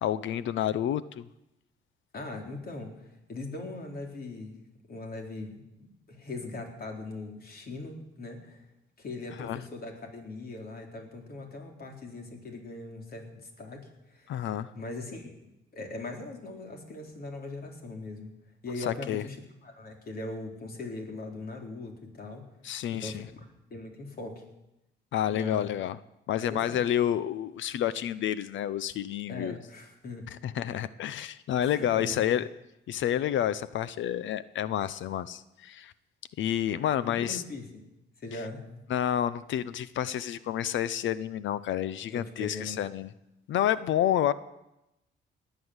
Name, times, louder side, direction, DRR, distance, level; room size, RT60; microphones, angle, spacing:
voice 1, 0.0-1.3 9.4-9.6 14.3-14.7 18.9-19.2 22.6-23.2 25.1-26.0 26.3-29.6 30.4-32.4 32.9-35.9 36.4-37.4 38.9-43.1 43.5-44.3, left 11 dB, 75° left, 16 dB, 0.7 m, -29 dB
voice 2, 2.1-4.6 4.9-8.7 9.0-14.5 14.7-18.3 18.6-19.4 19.6-22.5 22.9-23.5 23.7-24.4 25.3-25.7 26.4-26.8 29.3-30.3 31.6-32.2 37.0-37.8 38.2-38.8 42.1-42.8, left 2 dB, 50° left, 2 dB, 3.8 m, -40 dB
19.5 x 9.2 x 8.0 m, 0.91 s
cardioid pair, 90°, 20 cm